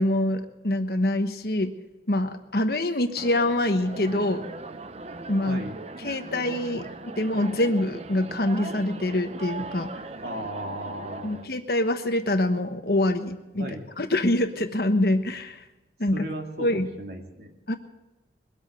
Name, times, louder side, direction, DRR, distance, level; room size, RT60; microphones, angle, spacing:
voice 1, 0.0-1.8 2.1-4.5 5.3-5.6 6.0-10.0 11.2-15.6 16.0-16.2 16.6-16.9 17.7-17.8, left 1 dB, 55° left, 7 dB, 1.2 m, -25 dB
sound 1, 3.1-11.5, right 3 dB, 35° right, 0.6 m, -39 dB
voice 2, 5.5-5.8 10.2-11.5 13.6-13.8 16.1-17.6, right 1 dB, 60° right, 2 dB, 2.4 m, -36 dB
21.5 x 8.1 x 7.7 m, 1.1 s
head